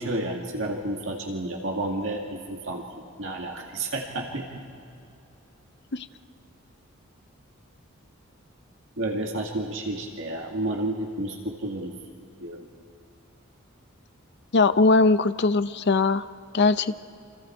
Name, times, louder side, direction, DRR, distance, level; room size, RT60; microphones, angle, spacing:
voice 1, 0.0-2.8 3.2-4.5 9.0-11.9 12.4-12.6, right 1 dB, 65° right, 1 dB, 2.1 m, -30 dB
voice 2, 14.5-16.2 16.5-17.1, left 3 dB, 55° left, 12 dB, 0.7 m, -20 dB
28.0 x 26.0 x 4.6 m, 2.5 s
head